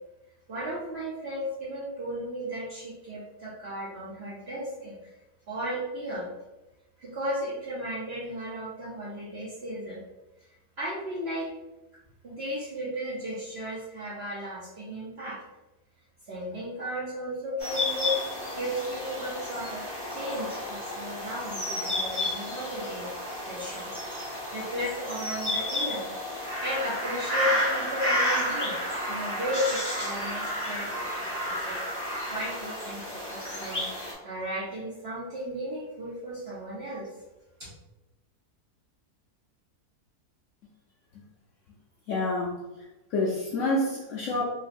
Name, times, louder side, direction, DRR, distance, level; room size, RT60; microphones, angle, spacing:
voice 1, 0.5-5.1 5.5-6.3 7.0-10.0 10.8-11.5 12.2-15.4 16.2-18.2 18.5-19.8 20.1-23.1 23.5-23.9 24.3-26.1 26.4-28.8 29.1-32.0 32.3-37.1 37.6-37.7, equal, 60° right, -7 dB, 0.7 m, -35 dB
sound 1, 17.6-34.1, left 1 dB, 25° left, 0.5 m, -31 dB
voice 2, 42.1-42.6 43.1-44.4, left 2 dB, 70° left, -4 dB, 0.7 m, -27 dB
3.1 x 2.7 x 2.5 m, 1.0 s
omnidirectional pair, 1.7 m